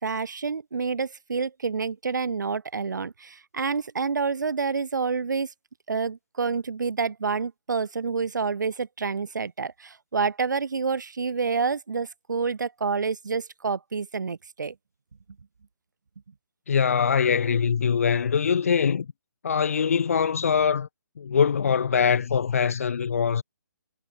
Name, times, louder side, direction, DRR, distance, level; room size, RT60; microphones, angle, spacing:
voice 1, 0.0-5.5 5.9-14.7, right 5 dB, 70° right, 4.3 m, -28 dB
voice 2, 16.7-19.1 19.4-20.9 21.2-23.4, left 6 dB, 50° left, 1.0 m, -23 dB
hypercardioid pair, 175°, 10 cm